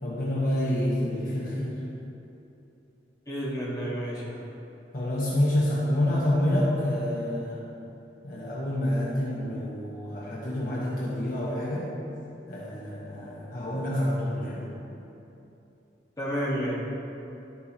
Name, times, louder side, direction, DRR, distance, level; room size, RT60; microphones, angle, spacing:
voice 1, 0.0-1.8 4.9-7.6 8.2-11.9 12.5-14.7, left 1 dB, 50° left, -6 dB, 1.4 m, -28 dB
voice 2, 3.3-4.5 16.2-16.7, equal, 20° left, -7 dB, 1.8 m, -30 dB
12.0 x 8.4 x 3.1 m, 2.8 s
head